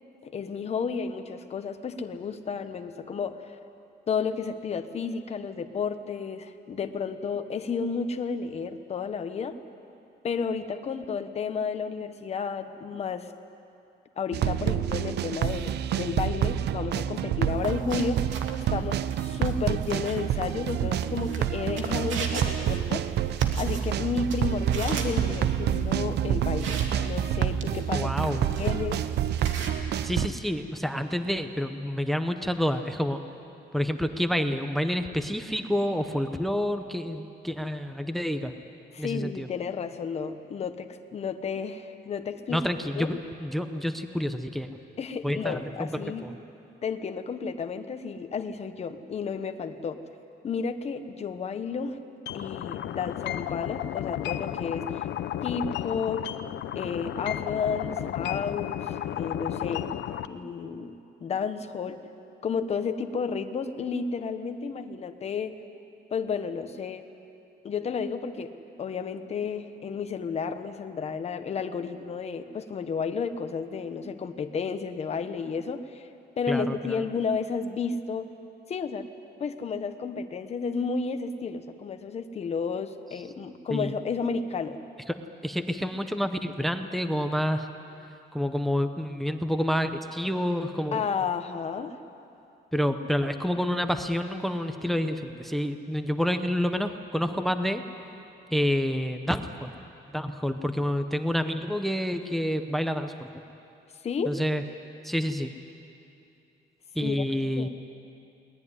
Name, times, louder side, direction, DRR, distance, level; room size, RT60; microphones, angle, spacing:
voice 1, 0.2-3.6 4.1-9.5 10.2-13.3 14.2-18.2 18.7-23.0 23.6-28.1 28.6-29.1 38.9-42.6 43.0-43.2 45.0-46.3 46.8-50.0 50.4-52.0 52.3-55.0 55.4-56.3 56.7-59.9 60.3-62.0 62.4-65.6 66.1-67.0 67.6-68.5 68.8-76.1 76.4-78.3 78.7-79.1 79.4-84.8 90.9-92.0 104.0-104.4 107.0-107.2 107.6-107.7, left 5 dB, 35° left, 8 dB, 1.1 m, -32 dB
sound 1, 14.3-30.3, right 10 dB, 60° right, 0.6 m, -28 dB
sound 2, 17.5-29.7, right 4 dB, 85° right, 2.8 m, -40 dB
voice 2, 27.9-28.5 30.0-33.2 33.7-38.5 39.0-39.5 42.5-43.1 43.4-44.8 45.2-46.4 76.5-77.1 83.7-83.9 85.1-85.2 85.4-87.7 88.3-91.0 92.7-97.8 98.5-99.7 100.1-103.3 104.3-104.6 105.0-105.5 106.9-107.7, equal, ahead, 8 dB, 0.8 m, -28 dB
sound 3, 52.3-60.3, left 11 dB, 65° left, 0.8 m, -33 dB
22.0 x 19.5 x 9.8 m, 2.7 s
cardioid pair, 170°, 19 cm